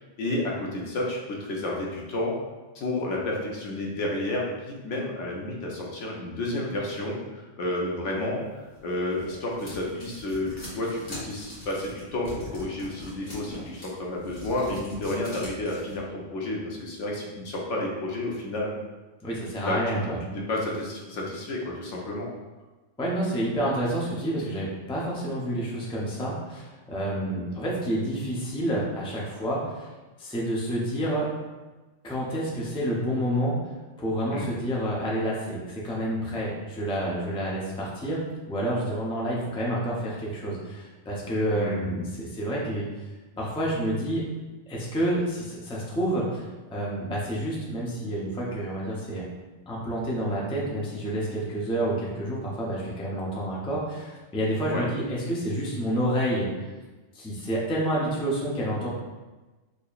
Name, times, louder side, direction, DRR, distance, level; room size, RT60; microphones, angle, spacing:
voice 1, 0.2-2.3 2.7-8.4 8.8-18.7 19.6-20.0 20.3-22.3 34.3-34.5 41.5-42.0 54.7-54.9, left 1 dB, 75° left, -2 dB, 1.1 m, -31 dB
sound 1, 8.7-16.0, left 1 dB, 40° left, 1.4 m, -42 dB
voice 2, 19.2-20.2 23.0-29.9 30.2-31.3 32.0-33.6 34.0-38.2 38.5-42.9 43.4-44.2 44.7-46.4 46.7-49.3 49.7-56.5 57.1-58.9, right 1 dB, 5° left, -5 dB, 0.4 m, -29 dB
4.7 x 2.8 x 2.4 m, 1.2 s
omnidirectional pair, 1.3 m